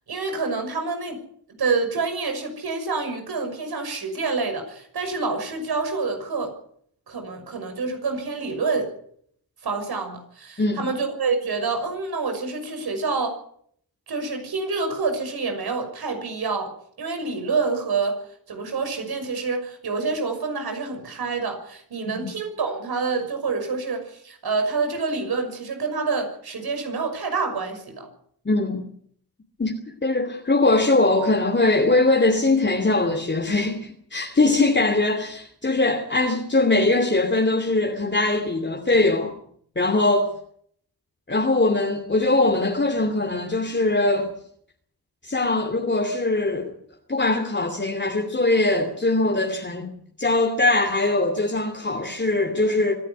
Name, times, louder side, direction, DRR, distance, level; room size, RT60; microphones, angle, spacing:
voice 1, 0.1-1.2 1.6-6.5 7.1-8.9 9.6-13.4 14.1-16.7 17.0-18.2 18.5-28.1, right 4 dB, 75° right, 6.2 m, -27 dB
voice 2, 28.4-28.8 29.6-39.3 39.8-40.3 41.3-44.3 45.2-46.7 47.1-49.9 50.2-52.9, left 2 dB, 30° left, 2.8 m, -21 dB
25.0 x 11.0 x 9.6 m
cardioid pair, 75°, 38 cm